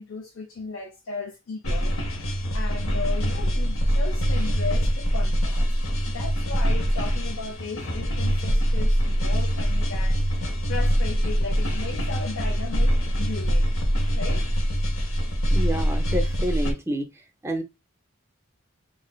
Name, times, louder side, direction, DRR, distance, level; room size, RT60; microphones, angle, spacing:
voice 1, 0.0-2.0 2.5-5.7 6.1-13.8 14.1-14.4, left 4 dB, 65° left, 0.5 m, -36 dB
sound 1, 1.6-16.7, equal, 90° left, 1.0 m, -24 dB
voice 2, 15.5-17.1 17.4-17.6, equal, 15° right, 0.5 m, -28 dB
3.1 x 2.5 x 2.2 m
head